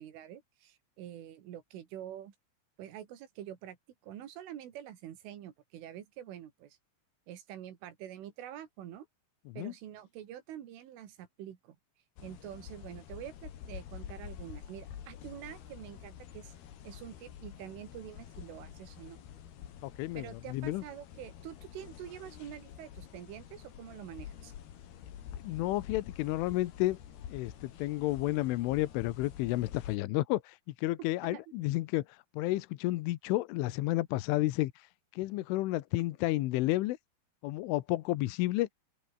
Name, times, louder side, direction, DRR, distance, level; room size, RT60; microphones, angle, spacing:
voice 1, 0.0-2.4 2.8-3.8 4.0-6.8 7.3-9.1 9.6-11.8 12.2-16.5 16.8-19.2 20.2-24.5 31.3-31.4, right 11 dB, 75° right, 4.8 m, -46 dB
sound 1, 12.2-30.0, left 10 dB, 55° left, 3.9 m, -48 dB
voice 2, 19.8-20.8 25.4-27.0 27.3-34.9 35.1-37.0 37.4-38.7, left 18 dB, 80° left, 3.4 m, -31 dB
open air
omnidirectional pair, 5.8 m